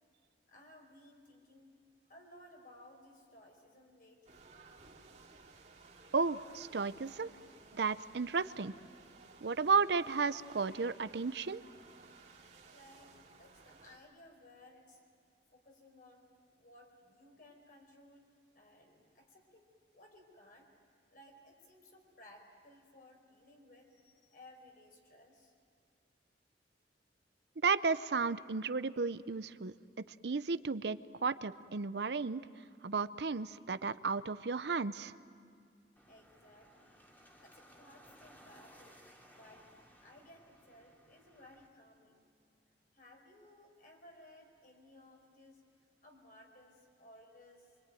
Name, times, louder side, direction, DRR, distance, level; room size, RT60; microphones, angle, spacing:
voice 1, 0.5-1.8 2.1-4.5 12.7-15.0 15.5-16.2 16.6-18.3 18.5-20.7 21.1-25.5 36.0-37.0 37.4-39.0 39.3-42.3 42.9-45.6 46.0-47.7, left 1 dB, 50° left, 2 dB, 4.7 m, -59 dB
sound 1, 4.2-14.0, right 4 dB, 40° right, 2.8 m, -58 dB
voice 2, 6.1-7.3 7.7-8.7 9.4-11.6 27.6-29.7 30.2-32.4 32.8-35.1, right 4 dB, 65° right, 14 dB, 0.6 m, -33 dB
sound 2, 36.0-41.7, equal, 10° left, 2.3 m, -61 dB
25.0 x 24.5 x 9.2 m, 2.2 s
head